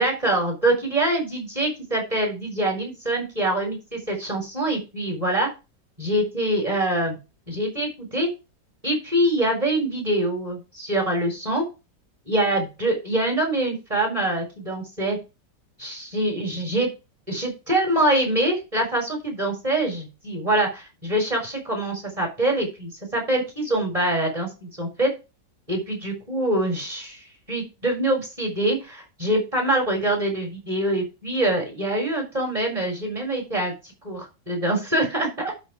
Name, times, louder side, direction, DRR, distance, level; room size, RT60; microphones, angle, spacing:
voice 1, 0.0-5.5 6.0-7.2 7.5-8.3 8.8-11.6 12.3-15.2 15.8-16.9 17.3-25.1 25.7-27.2 27.5-35.5, right 1 dB, 20° right, 1 dB, 4.3 m, -24 dB
12.0 x 4.6 x 4.9 m, 0.28 s
omnidirectional pair, 1.9 m